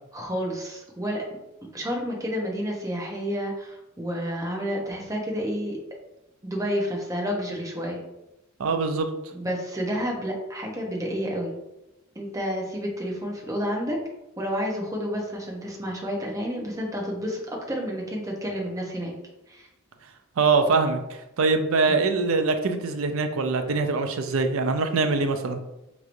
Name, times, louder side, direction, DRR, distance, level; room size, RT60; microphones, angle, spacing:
voice 1, 0.1-1.2 1.7-5.8 6.4-8.0 9.3-11.5 12.1-14.0 14.4-17.4 17.7-19.1 19.5-19.7 21.9-22.0, equal, 15° right, -1 dB, 0.8 m, -30 dB
voice 2, 8.6-9.1 20.4-25.6, right 4 dB, 80° right, 6 dB, 0.5 m, -23 dB
4.6 x 3.0 x 2.5 m, 0.90 s
head